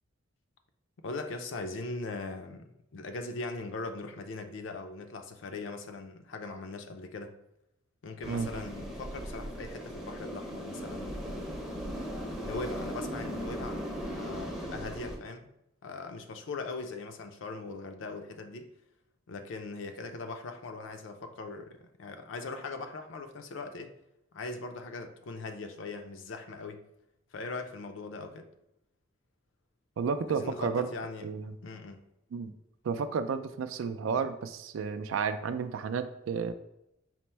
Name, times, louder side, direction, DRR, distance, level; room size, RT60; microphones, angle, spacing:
voice 1, 1.0-7.3 8.0-11.8 12.4-13.8 14.1-15.5 15.8-18.7 19.3-23.9 24.3-26.8 27.3-28.5 30.3-31.3 31.6-32.0, left 3 dB, 70° left, 6 dB, 0.4 m, -40 dB
sound 1, 8.2-15.2, equal, ahead, 0.5 m, -38 dB
voice 2, 30.0-30.9 31.2-31.5 32.3-32.5 32.8-36.5, right 5 dB, 90° right, 11 dB, 0.3 m, -32 dB
4.2 x 2.0 x 4.3 m, 0.83 s
head